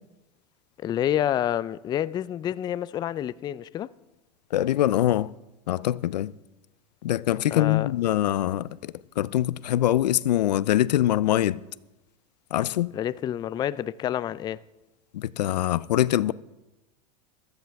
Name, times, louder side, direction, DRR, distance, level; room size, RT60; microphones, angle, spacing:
voice 1, 0.8-3.9 7.5-7.9 12.9-14.6, left 11 dB, 20° left, 0.3 m, -28 dB
voice 2, 4.5-5.3 5.7-6.3 7.0-11.6 12.5-12.9 15.1-16.3, left 13 dB, 90° left, 0.5 m, -24 dB
14.5 x 13.5 x 3.5 m
hypercardioid pair, 115°, 21 cm